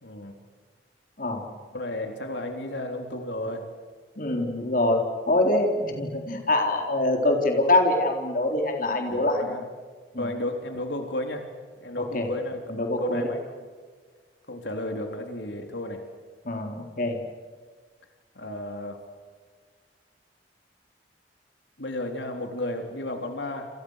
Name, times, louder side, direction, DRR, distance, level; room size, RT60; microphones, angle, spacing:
voice 1, 0.0-0.4 1.7-3.7 9.1-9.6 10.2-11.5 11.8-13.4 14.5-16.0 18.4-19.0 21.8-23.7, left 1 dB, 75° left, 4 dB, 3.8 m, -33 dB
voice 2, 4.2-9.5 10.1-10.3 12.0-12.3 12.7-13.3 16.4-17.2, left 2 dB, 50° left, 3 dB, 4.1 m, -24 dB
29.5 x 28.5 x 6.6 m, 1.5 s
head